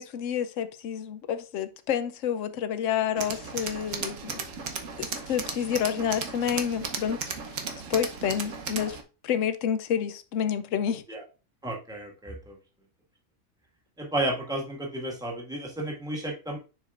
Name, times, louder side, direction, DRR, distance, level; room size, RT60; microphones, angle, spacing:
voice 1, 0.0-4.4 5.0-7.3 7.9-9.0 9.2-11.0, left 8 dB, 70° left, 1.0 m, -29 dB
Tools, 3.2-9.0, right 5 dB, 70° right, 1.3 m, -35 dB
voice 2, 11.6-12.5 14.0-16.6, right 1 dB, 5° right, 1.7 m, -32 dB
10.5 x 4.8 x 2.5 m
omnidirectional pair, 1.4 m